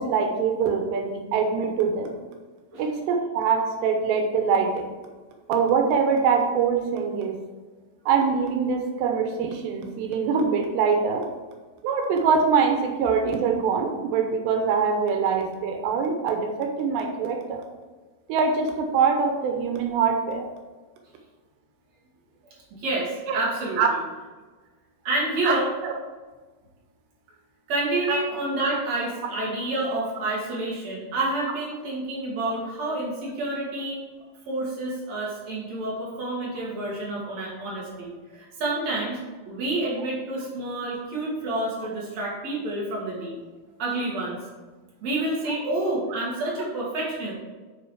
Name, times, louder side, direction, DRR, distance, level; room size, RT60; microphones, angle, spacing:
voice 1, 0.0-2.1 2.8-4.7 5.5-7.4 8.1-11.3 11.8-17.6 18.3-20.5 23.3-23.4 23.8-23.9 25.4-25.9 28.1-28.2, right 5 dB, 90° right, 4 dB, 3.1 m, -23 dB
voice 2, 22.8-24.0 25.0-25.7 27.7-34.0 34.5-39.2 39.5-43.4 43.8-44.4 45.0-47.3, right 2 dB, 50° right, -4 dB, 2.8 m, -28 dB
8.3 x 5.4 x 4.8 m, 1.3 s
omnidirectional pair, 4.8 m